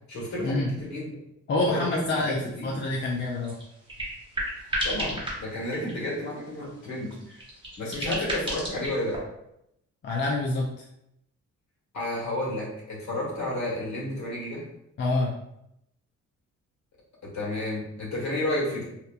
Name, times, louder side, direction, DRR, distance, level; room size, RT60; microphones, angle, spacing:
voice 1, 0.1-1.1 1.6-2.8 4.8-7.4 7.8-9.2 11.9-14.6 17.2-18.8, left 1 dB, 65° left, -5 dB, 1.4 m, -31 dB
voice 2, 1.5-3.5 8.1-8.2 10.0-10.7 15.0-15.3, left 2 dB, 40° left, -2 dB, 0.4 m, -27 dB
sound 1, 2.1-2.2 2.4-2.5 2.8-2.9 3.2-6.2 6.7-9.2, equal, 15° right, 1.0 m, -33 dB
2.8 x 2.1 x 2.4 m, 0.80 s
cardioid pair, 90°, 30 cm